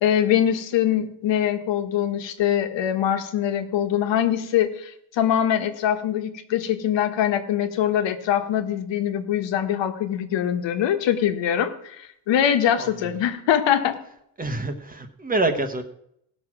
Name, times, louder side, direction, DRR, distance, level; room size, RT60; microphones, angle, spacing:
voice 1, 0.0-14.0, left 10 dB, 85° left, 7 dB, 1.4 m, -23 dB
voice 2, 12.8-13.1 14.4-15.8, right 2 dB, 20° right, 7 dB, 1.0 m, -26 dB
17.0 x 6.3 x 6.0 m, 0.73 s
cardioid pair, 170°, 43 cm